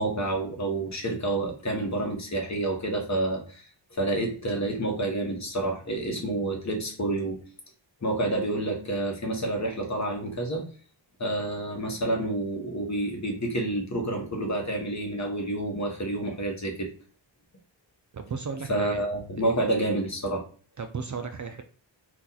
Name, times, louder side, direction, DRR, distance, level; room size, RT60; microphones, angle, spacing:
voice 1, 0.0-3.6 3.9-7.4 8.0-10.6 11.2-16.9 18.7-20.4, right 2 dB, 35° left, 1 dB, 1.0 m, -29 dB
voice 2, 18.1-19.0 20.8-21.6, right 5 dB, 40° right, 6 dB, 0.4 m, -34 dB
2.8 x 2.5 x 3.8 m, 0.41 s
wide cardioid pair, 85°, 46 cm